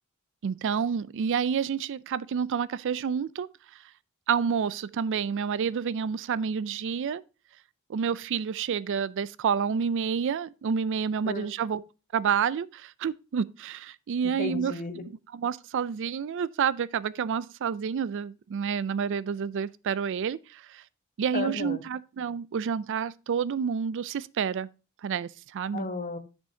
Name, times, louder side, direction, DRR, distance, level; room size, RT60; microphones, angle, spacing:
voice 1, 0.4-3.5 4.3-7.2 7.9-11.8 12.1-14.7 15.3-20.8 21.2-24.7 25.0-25.9, right 7 dB, 60° right, 0.4 m, -29 dB
voice 2, 14.4-15.0 21.3-21.8 25.7-26.2, left 3 dB, 40° left, 1.2 m, -33 dB
10.5 x 6.2 x 2.7 m
head